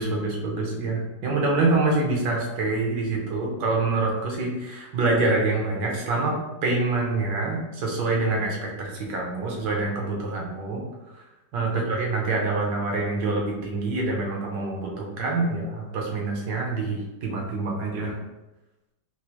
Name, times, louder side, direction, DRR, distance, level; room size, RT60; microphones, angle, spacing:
voice 1, 0.0-6.3 6.6-10.8 11.5-18.2, right 3 dB, 85° right, -1 dB, 1.5 m, -26 dB
4.7 x 2.0 x 2.8 m, 1.0 s
omnidirectional pair, 1.9 m